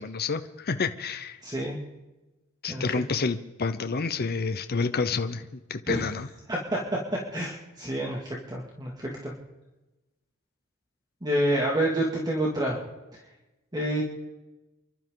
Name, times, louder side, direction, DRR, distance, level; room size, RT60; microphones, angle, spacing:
voice 1, 0.0-1.4 2.6-6.3, left 4 dB, 50° left, 9 dB, 0.8 m, -29 dB
voice 2, 1.4-1.8 2.7-2.8 5.9-6.0 6.5-6.6 7.3-9.3 11.2-12.8 13.7-14.0, right 1 dB, 20° right, -2 dB, 2.3 m, -28 dB
29.0 x 12.0 x 3.9 m, 1.0 s
head